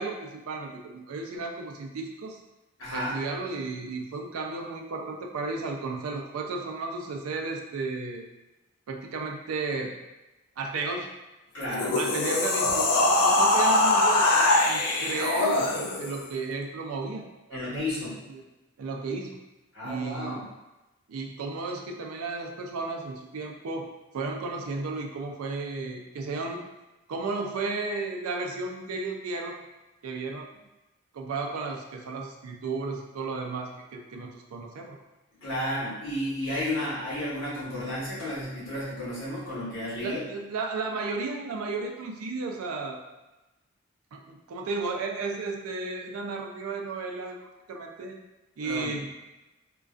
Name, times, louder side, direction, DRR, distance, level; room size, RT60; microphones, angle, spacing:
voice 1, 0.0-2.4 2.9-8.2 8.9-9.9 10.6-11.1 12.0-18.4 18.8-19.4 19.8-20.4 21.1-23.9 24.1-26.6 27.1-29.6 30.0-30.5 31.1-35.0 40.0-43.0 44.1-47.4 47.7-48.2 48.6-49.1, right 3 dB, 90° right, 2 dB, 0.4 m, -34 dB
voice 2, 2.8-3.1 11.5-12.0 17.5-18.1 19.7-20.4 35.4-40.2 48.6-48.9, left 1 dB, 60° left, -9 dB, 1.1 m, -32 dB
sound 1, 11.6-16.2, left 2 dB, 90° left, 0.4 m, -23 dB
2.4 x 2.2 x 2.3 m, 1.0 s
head